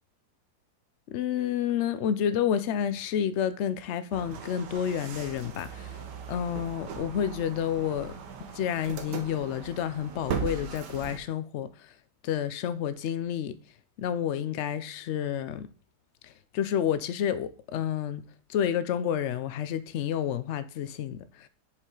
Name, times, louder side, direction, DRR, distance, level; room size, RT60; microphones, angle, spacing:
voice 1, 1.1-6.0 6.3-8.1 8.5-11.9 12.2-13.6 14.0-15.7 16.2-18.2 18.5-21.5, left 9 dB, 75° left, 0.6 m, -30 dB
sound 1, 4.1-11.2, right 7 dB, 85° right, 1.6 m, -38 dB
7.3 x 5.2 x 3.8 m
omnidirectional pair, 1.8 m